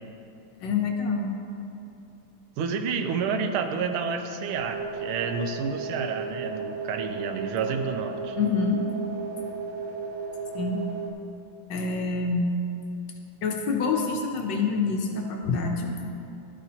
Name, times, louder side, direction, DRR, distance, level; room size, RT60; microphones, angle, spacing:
voice 1, 0.6-1.3 8.4-8.8 9.1-9.2 10.5-10.8 11.7-12.5 13.4-15.9, left 4 dB, 70° left, 2 dB, 1.3 m, -26 dB
voice 2, 2.6-8.4, right 5 dB, 85° right, 7 dB, 1.5 m, -29 dB
sound 1, 4.5-11.1, right 4 dB, 70° right, 1.0 m, -34 dB
11.5 x 8.4 x 2.8 m, 2.7 s
omnidirectional pair, 2.3 m